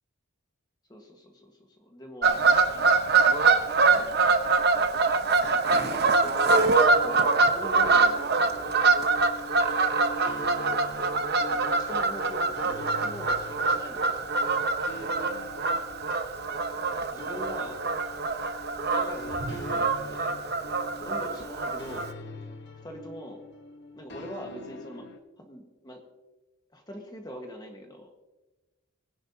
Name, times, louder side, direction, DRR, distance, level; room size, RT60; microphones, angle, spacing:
voice 1, 0.9-2.4 5.7-6.1 6.8-8.8 11.5-14.3 17.1-17.8 18.3-18.5 18.9-20.3 21.0-22.1 22.8-23.4 23.9-25.1 25.4-26.0 26.7-28.1, left 1 dB, 20° left, 2 dB, 1.5 m, -43 dB
Fowl / Bird vocalization bird call bird song, 2.2-22.1, right 4 dB, 45° right, 0.9 m, -24 dB
sound 1, 5.7-25.2, left 1 dB, 50° left, 1.2 m, -44 dB
20.0 x 10.5 x 2.8 m, 1.1 s
head